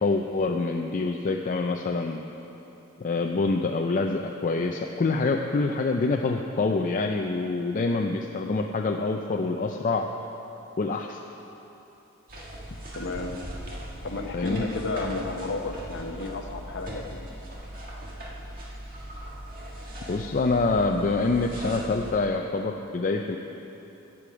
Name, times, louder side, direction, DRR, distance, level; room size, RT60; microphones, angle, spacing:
voice 1, 0.0-2.2 3.0-10.1 10.8-11.2 14.3-14.6 20.1-23.4, left 3 dB, 35° left, 3 dB, 0.4 m, -26 dB
sound 1, 12.3-22.1, equal, 40° right, 1.7 m, -39 dB
voice 2, 12.9-13.4 14.0-17.2, left 3 dB, 55° left, 4 dB, 1.0 m, -32 dB
14.5 x 8.5 x 4.9 m, 3.0 s
head